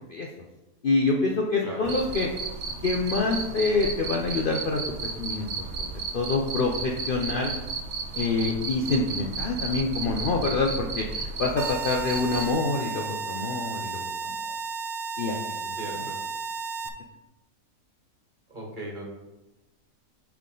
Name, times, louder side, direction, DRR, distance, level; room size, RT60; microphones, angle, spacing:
voice 1, 0.8-2.3 2.8-4.8 5.2-5.9 6.1-7.5 8.2-14.3 15.2-15.4 15.6-15.8, left 3 dB, 50° left, 0 dB, 0.6 m, -26 dB
voice 2, 1.6-1.9 15.8-16.2 18.5-19.0, right 1 dB, 35° right, -2 dB, 1.5 m, -37 dB
Cricket, 1.8-12.5, right 4 dB, 60° right, 0.9 m, -34 dB
sound 1, 11.6-16.9, right 5 dB, 85° right, 1.1 m, -33 dB
10.0 x 3.6 x 3.8 m, 1.0 s
omnidirectional pair, 1.5 m